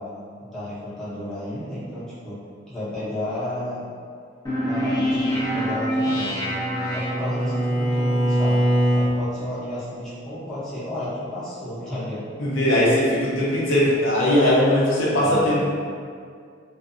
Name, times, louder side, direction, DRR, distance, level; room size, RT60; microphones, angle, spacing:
voice 1, 0.0-2.4 2.7-3.8 4.6-6.4 6.9-8.7 8.9-12.3 15.2-15.6, left 1 dB, 5° left, -13 dB, 0.8 m, -32 dB
sound 1, 4.4-7.7, equal, 20° left, 0.4 m, -26 dB
Bowed string instrument, 5.8-9.2, equal, 65° right, 0.8 m, -23 dB
voice 2, 12.4-15.6, left 1 dB, 85° left, -7 dB, 0.6 m, -19 dB
2.6 x 2.1 x 2.4 m, 2.2 s
head